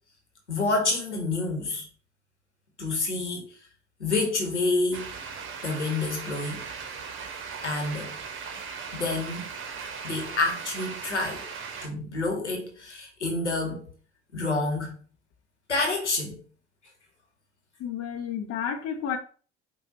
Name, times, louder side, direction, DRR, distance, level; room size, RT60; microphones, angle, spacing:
voice 1, 0.5-1.9 2.8-3.5 4.0-5.1 5.6-6.7 7.6-8.1 8.9-9.5 10.0-11.5 11.8-13.9 14.3-14.9 15.7-16.4, left 3 dB, 90° left, 1.1 m, -28 dB
sound 1, 4.9-11.9, right 5 dB, 35° right, 0.9 m, -38 dB
voice 2, 17.8-19.2, left 8 dB, 45° left, 0.7 m, -31 dB
5.0 x 2.3 x 3.9 m
figure-of-eight pair, 65°, 34 cm